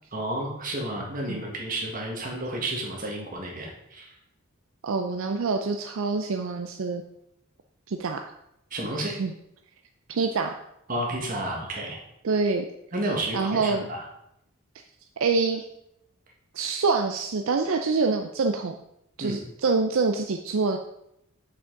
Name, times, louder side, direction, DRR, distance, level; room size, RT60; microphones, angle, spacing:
voice 1, 0.1-4.1 8.7-9.1 10.9-12.0 12.9-14.0 19.2-19.4, right 1 dB, 40° right, 0 dB, 1.6 m, -31 dB
voice 2, 4.8-7.0 7.9-8.2 9.2-9.3 10.1-10.6 12.2-12.6 13.3-13.9 15.2-15.7 16.5-18.7 19.2-20.8, right 4 dB, 70° right, 5 dB, 0.5 m, -25 dB
6.7 x 5.8 x 3.8 m, 0.79 s
head